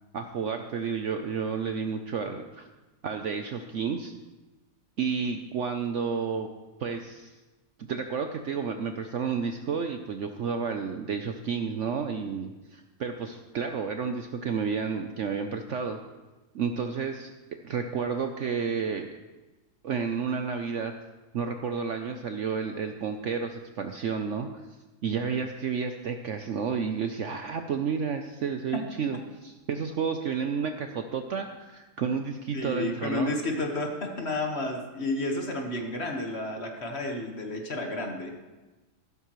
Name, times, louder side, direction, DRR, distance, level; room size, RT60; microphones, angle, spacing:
voice 1, 0.1-2.7 3.0-4.1 5.0-6.5 6.8-7.3 7.8-16.0 16.5-17.3 17.6-19.1 19.8-20.9 21.3-24.5 25.0-33.3, right 6 dB, 60° right, 6 dB, 0.8 m, -31 dB
voice 2, 32.5-38.3, left 2 dB, 40° left, 2 dB, 1.6 m, -31 dB
14.5 x 12.5 x 3.1 m, 1.1 s
omnidirectional pair, 1.7 m